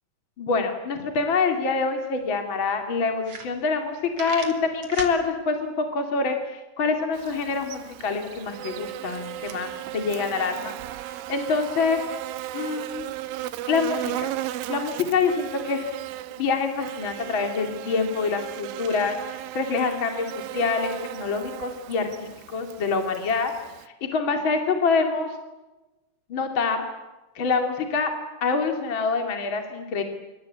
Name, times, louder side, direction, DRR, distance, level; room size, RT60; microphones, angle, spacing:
voice 1, 0.4-12.0 12.5-13.1 13.7-15.9 16.4-23.5 23.8-25.4 26.3-26.9 27.3-28.1 28.4-30.0, left 4 dB, 35° left, 5 dB, 2.3 m, -26 dB
sound 1, 1.8-1.9 2.2-2.3 2.8-2.9 3.2-3.9 4.1-5.2, right 4 dB, 35° right, 3.4 m, -35 dB
Buzz, 7.1-23.9, right 15 dB, 80° right, 3.5 m, -36 dB
27.0 x 25.0 x 8.6 m, 1.1 s
omnidirectional pair, 5.5 m